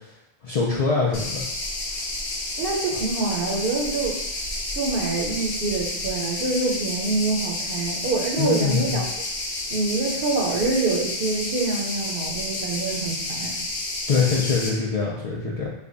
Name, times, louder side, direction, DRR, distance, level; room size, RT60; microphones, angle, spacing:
voice 1, 0.4-1.4 8.4-9.0 14.1-15.7, left 4 dB, 50° left, -5 dB, 0.5 m, -23 dB
sound 1, 1.1-14.7, left 2 dB, 80° left, 1.0 m, -30 dB
voice 2, 2.6-4.2 4.7-9.1 9.7-13.5, right 3 dB, 60° right, 0 dB, 0.8 m, -26 dB
3.4 x 2.2 x 3.8 m, 0.84 s
omnidirectional pair, 1.1 m